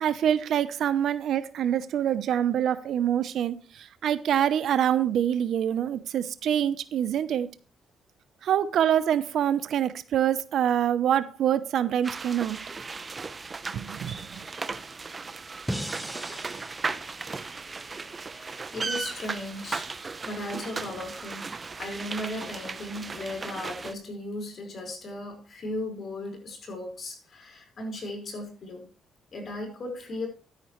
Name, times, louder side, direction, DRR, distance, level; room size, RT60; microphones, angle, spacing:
voice 1, 0.0-7.5 8.4-12.6 13.7-14.4, right 10 dB, 70° right, 0.8 m, -25 dB
sound 1, 12.0-23.9, right 4 dB, 30° right, 0.8 m, -36 dB
sound 2, 15.7-18.8, equal, 5° right, 1.1 m, -39 dB
voice 2, 18.3-19.9 20.2-21.4 21.8-28.9 29.3-30.3, left 1 dB, 50° left, 5.0 m, -36 dB
12.5 x 10.0 x 3.2 m
cardioid pair, 90°, 0 cm